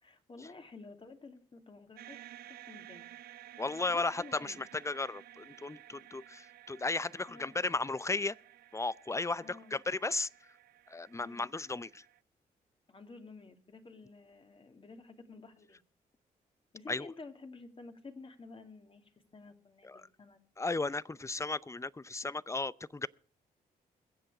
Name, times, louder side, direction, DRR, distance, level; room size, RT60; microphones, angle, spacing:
voice 1, 0.0-3.0 3.9-4.6 7.3-7.6 9.4-9.7 11.1-11.5 12.9-15.8 16.7-20.4, left 3 dB, 35° left, 2.6 m, -52 dB
sound 1, 2.0-12.2, right 13 dB, 75° right, 0.6 m, -54 dB
voice 2, 3.6-8.4 8.7-10.3 10.9-12.1 16.9-17.1 19.8-20.1 20.6-23.1, left 3 dB, 20° left, 0.6 m, -35 dB
21.5 x 7.9 x 4.8 m
supercardioid pair, 60°, 16 cm